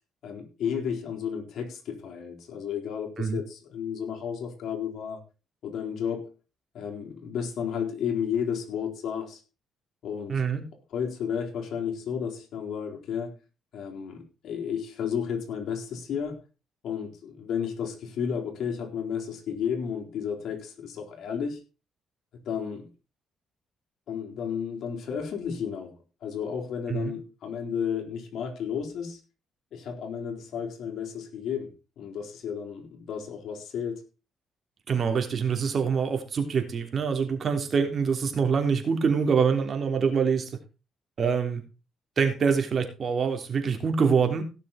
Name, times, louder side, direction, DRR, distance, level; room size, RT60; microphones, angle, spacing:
voice 1, 0.2-5.2 5.6-6.3 6.7-9.4 10.0-10.4 10.9-13.3 13.7-16.4 16.8-21.6 22.5-22.9 24.1-25.9 26.2-29.2 29.7-34.0, left 7 dB, 70° left, 4.2 m, -32 dB
voice 2, 10.3-10.6 26.9-27.1 34.9-40.5 41.2-41.6 42.2-44.4, right 6 dB, 50° right, 3.2 m, -25 dB
17.0 x 6.8 x 4.3 m
cardioid pair, 90°, 0 cm